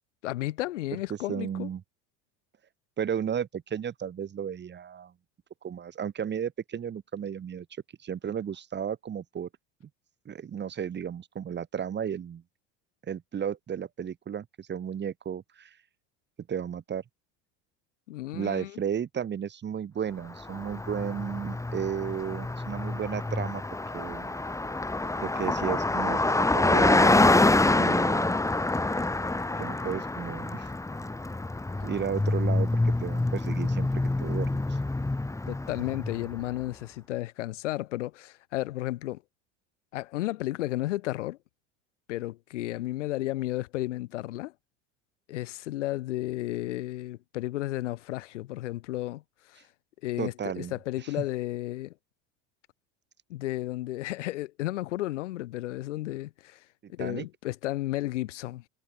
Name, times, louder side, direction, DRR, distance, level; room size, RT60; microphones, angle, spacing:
voice 1, 0.2-1.7 18.1-18.8 35.5-39.2 39.9-41.4 42.1-44.5 45.3-49.2 49.5-49.6 50.0-51.9 53.3-56.6 56.9-58.6, left 16 dB, 85° left, 5.7 m, -33 dB
voice 2, 1.3-1.8 3.0-5.1 5.6-7.7 8.0-9.5 10.3-12.4 13.1-15.7 16.5-17.0 18.3-23.6 23.9-24.3 25.2-27.2 27.7-28.5 29.6-30.7 31.8-34.6 50.2-50.7 51.0-51.1 57.0-57.3, right 8 dB, 30° right, 2.1 m, -34 dB
Car passing by, 20.4-36.4, left 2 dB, 10° left, 2.9 m, -26 dB
supercardioid pair, 100°, 35 cm